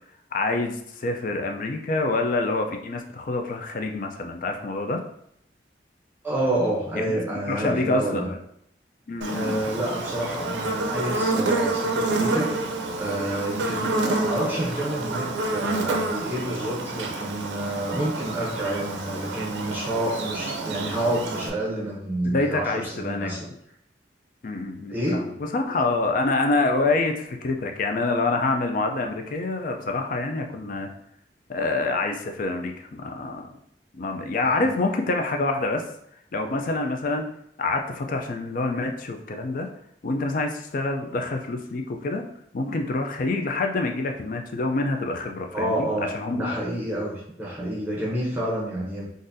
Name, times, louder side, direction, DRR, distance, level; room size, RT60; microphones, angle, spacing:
voice 1, 0.3-5.0 6.9-7.2 7.5-8.4 9.1-9.6 13.6-13.8 22.2-23.4 24.4-25.2 25.5-30.9 31.5-33.5 33.9-35.8 36.3-37.3 37.6-39.7 40.0-42.2 42.5-45.9 46.1-46.6, left 2 dB, 50° left, 4 dB, 0.4 m, -26 dB
voice 2, 6.2-8.3 9.2-12.5 13.0-23.5 24.9-25.3 34.4-34.7 45.5-49.1, right 1 dB, 10° right, -6 dB, 0.7 m, -29 dB
Buzz, 9.2-21.5, right 2 dB, 90° right, 0.5 m, -28 dB
3.9 x 2.5 x 2.6 m, 0.72 s
head